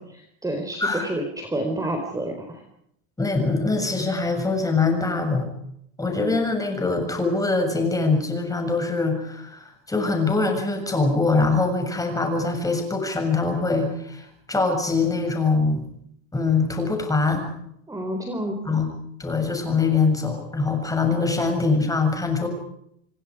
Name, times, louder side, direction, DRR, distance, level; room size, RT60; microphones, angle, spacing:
voice 1, 0.1-2.6 17.9-18.8, right 1 dB, 10° right, 4 dB, 4.4 m, -29 dB
voice 2, 3.2-5.4 6.0-15.9 16.3-17.5 18.7-18.9 19.2-22.5, left 3 dB, 10° left, 5 dB, 7.0 m, -23 dB
28.0 x 25.5 x 5.0 m, 0.73 s
supercardioid pair, 150°, 42 cm